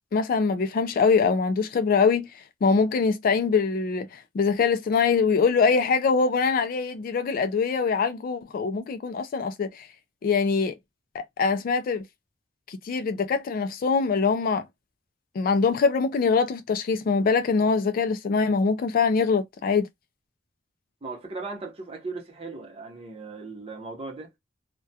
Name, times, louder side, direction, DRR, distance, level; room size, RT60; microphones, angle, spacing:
voice 1, 0.1-2.3 2.6-9.9 10.2-10.7 11.1-12.0 12.7-14.7 15.4-19.9, left 5 dB, 50° left, 0.3 m, -23 dB
voice 2, 21.0-24.3, right 3 dB, 30° right, 0.7 m, -37 dB
2.3 x 2.2 x 2.6 m
head